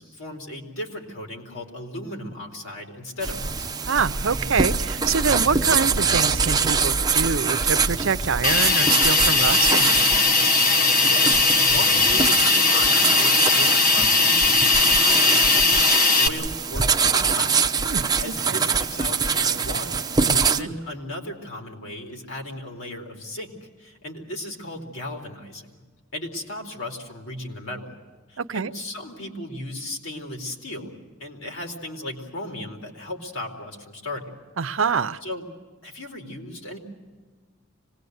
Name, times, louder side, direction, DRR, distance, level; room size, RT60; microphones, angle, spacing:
voice 1, 0.0-3.7 11.0-17.7 18.2-19.9 20.3-25.8 26.1-28.0 28.3-34.4 35.2-35.5 35.8-36.8, left 1 dB, 90° left, 1 dB, 4.1 m, -36 dB
sound 1, 3.2-20.6, right 5 dB, 20° right, 0.8 m, -24 dB
voice 2, 3.9-9.9 17.8-18.6 20.3-20.8 28.4-28.7 34.6-35.2, right 5 dB, 70° right, 12 dB, 0.7 m, -26 dB
sound 2, 4.0-8.0 10.4-10.5, equal, 30° left, 6.1 m, -44 dB
Hiss, 8.4-16.3, left 3 dB, 45° left, 1.6 m, -18 dB
25.5 x 20.0 x 8.1 m, 1.5 s
head